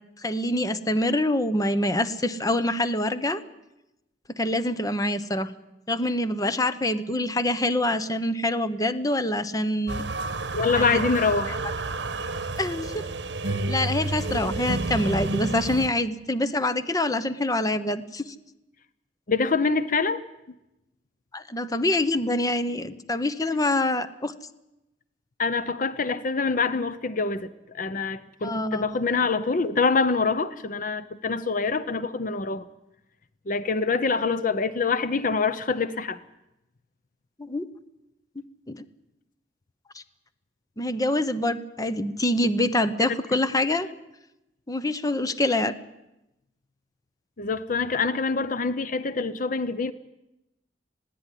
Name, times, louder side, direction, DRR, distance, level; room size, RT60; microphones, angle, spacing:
voice 1, 0.2-3.4 4.3-5.5 5.9-10.0 10.7-11.0 11.5-11.6 12.6-13.1 13.7-18.3 21.3-24.3 28.4-29.0 37.4-37.6 38.7-38.8 39.9-40.0 40.8-43.9 44.7-45.7, left 1 dB, 20° left, 0.9 m, -25 dB
sound 1, 9.9-15.9, right 2 dB, 70° right, 1.3 m, -30 dB
voice 2, 10.5-11.6 13.5-13.6 19.3-20.2 25.4-27.5 27.7-32.6 33.5-36.2 47.4-49.9, left 4 dB, 45° left, 0.7 m, -25 dB
20.5 x 16.0 x 10.0 m
head